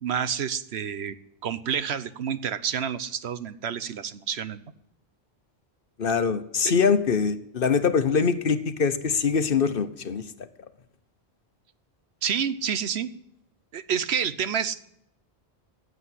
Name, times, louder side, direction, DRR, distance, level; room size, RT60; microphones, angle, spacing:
voice 1, 0.0-1.2 1.4-4.7 12.2-13.1 13.7-14.8, right 8 dB, 80° right, 13 dB, 1.1 m, -29 dB
voice 2, 6.0-10.5, left 6 dB, 60° left, 11 dB, 1.1 m, -23 dB
15.5 x 8.2 x 10.0 m, 0.76 s
omnidirectional pair, 1.1 m